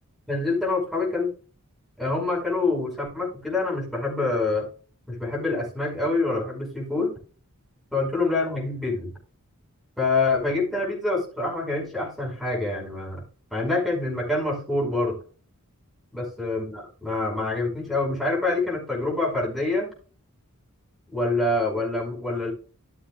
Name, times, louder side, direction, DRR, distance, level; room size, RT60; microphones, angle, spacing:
voice 1, 0.3-1.3 2.0-4.7 5.1-7.1 7.9-9.1 10.0-13.2 13.5-15.2 16.1-19.9 21.1-22.5, left 2 dB, ahead, -4 dB, 5.3 m, -26 dB
14.0 x 7.3 x 2.4 m, 0.39 s
head